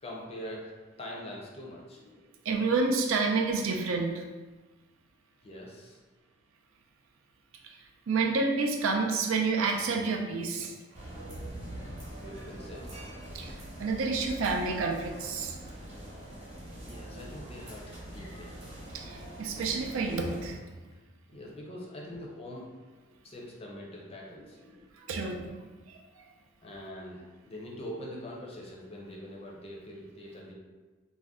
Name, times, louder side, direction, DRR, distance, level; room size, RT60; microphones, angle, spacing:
voice 1, 0.0-0.7 1.0-2.3 5.4-6.0 11.7-12.9 15.3-16.0 16.7-18.5 21.3-22.7 23.2-25.2 26.6-30.5, left 1 dB, 30° left, -2 dB, 0.5 m, -44 dB
voice 2, 2.5-4.2 7.6-7.8 8.1-10.7 13.3-15.6 18.9-20.6 25.1-26.0, right 4 dB, 85° right, 2 dB, 0.4 m, -29 dB
sound 1, 10.9-20.5, right 1 dB, 35° right, 0.9 m, -43 dB
2.5 x 2.1 x 3.4 m, 1.3 s
head